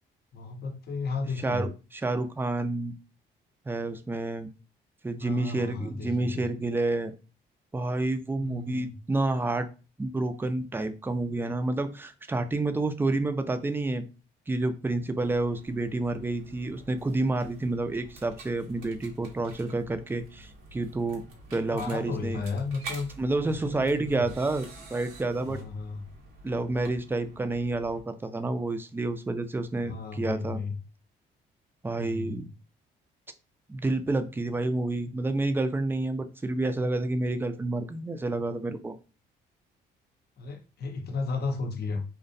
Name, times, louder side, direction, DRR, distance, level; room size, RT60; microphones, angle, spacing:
voice 1, 0.3-1.7 5.2-6.7 8.4-9.0 21.7-23.1 23.4-24.2 25.5-26.0 29.9-30.8 32.0-32.5 40.4-42.0, left 4 dB, 55° left, 0.6 m, -34 dB
voice 2, 1.4-2.9 3.7-4.5 5.0-7.1 7.7-9.7 10.0-14.0 14.5-21.2 21.5-22.4 23.2-25.6 26.4-30.6 31.8-32.5 33.7-38.9, right 2 dB, 10° right, 0.3 m, -29 dB
sound 1, 15.2-28.0, right 2 dB, 85° right, 0.7 m, -48 dB
2.5 x 2.0 x 2.5 m
supercardioid pair, 60°, 20 cm